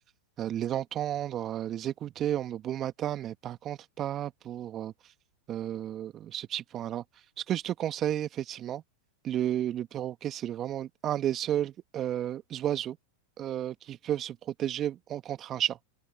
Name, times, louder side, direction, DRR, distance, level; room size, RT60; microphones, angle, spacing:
voice 1, 0.4-4.9 5.5-7.0 7.4-8.8 9.2-13.0 13.4-15.8, right 11 dB, 35° right, 1.9 m, -32 dB
open air
hypercardioid pair, 100°, 0 cm